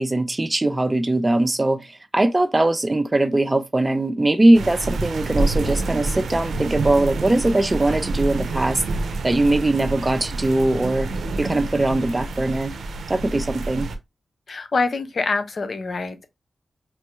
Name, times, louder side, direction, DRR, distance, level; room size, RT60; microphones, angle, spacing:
voice 1, 0.0-8.8 9.2-11.1 11.4-12.8 13.1-13.9, right 2 dB, 30° right, 0.6 m, -20 dB
sound 1, 4.5-14.0, right 3 dB, 85° right, 0.6 m, -27 dB
voice 2, 14.5-16.3, left 3 dB, 65° left, 0.7 m, -25 dB
5.3 x 2.1 x 3.1 m
cardioid pair, 45°, 0 cm